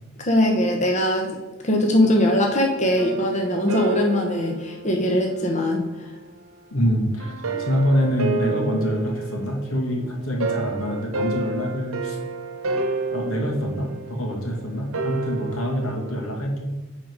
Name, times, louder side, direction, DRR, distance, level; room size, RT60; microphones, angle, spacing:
voice 1, 0.2-1.3 1.6-5.9, left 1 dB, 35° left, 1 dB, 1.0 m, -21 dB
sound 1, 2.9-5.9 7.2-16.4, right 4 dB, 80° right, 0.9 m, -30 dB
voice 2, 6.7-12.2 13.1-16.7, equal, 85° left, 0 dB, 2.1 m, -25 dB
10.0 x 4.1 x 4.8 m, 1.1 s
head